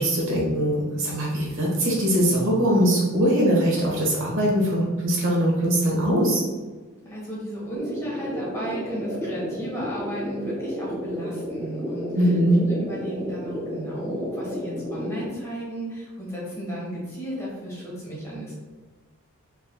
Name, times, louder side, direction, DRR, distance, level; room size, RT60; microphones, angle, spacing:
voice 1, 0.0-6.4 12.1-12.6, equal, 60° right, -4 dB, 1.2 m, -21 dB
voice 2, 7.0-12.3 12.6-18.5, equal, 15° left, -7 dB, 1.3 m, -34 dB
sound 1, 7.8-15.3, equal, 10° right, 0.6 m, -32 dB
4.2 x 3.6 x 2.3 m, 1.3 s
head